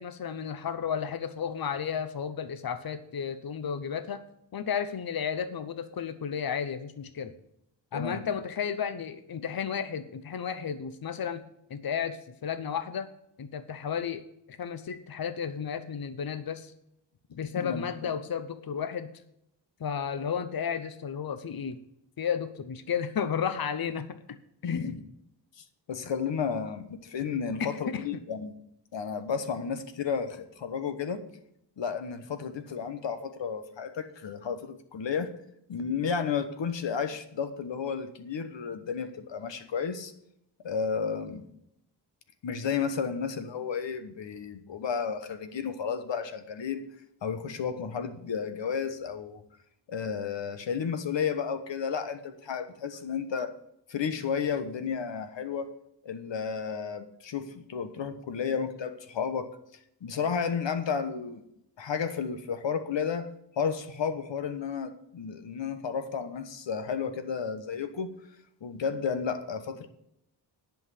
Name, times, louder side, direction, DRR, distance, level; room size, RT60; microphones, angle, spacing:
voice 1, 0.0-4.2 4.5-7.3 7.9-11.4 11.7-13.1 13.4-14.2 14.5-16.7 17.4-19.1 19.8-21.8 22.2-24.1 24.7-24.9 27.6-28.0, left 7 dB, 55° left, 11 dB, 0.8 m, -33 dB
voice 2, 7.9-8.2 17.6-18.1 24.6-25.0 25.6-28.5 28.9-31.2 31.8-35.3 35.7-40.1 40.6-41.5 42.4-46.8 47.2-49.4 49.9-53.5 53.9-55.7 56.0-59.5 60.0-61.4 61.8-63.3 63.6-68.1 68.6-69.9, left 6 dB, 85° left, 10 dB, 1.2 m, -32 dB
10.5 x 5.8 x 8.2 m, 0.76 s
wide cardioid pair, 95°, 43 cm